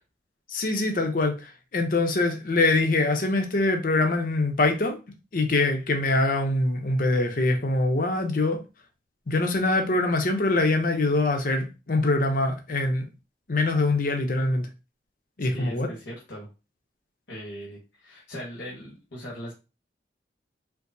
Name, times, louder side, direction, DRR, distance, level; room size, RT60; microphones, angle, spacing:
voice 1, 0.5-5.0 5.3-8.6 9.3-13.0 13.5-14.7 15.4-15.9, left 2 dB, 50° left, 0.7 m, -24 dB
voice 2, 15.5-16.5 17.3-19.5, equal, 85° left, 1.2 m, -39 dB
4.5 x 2.1 x 2.6 m
head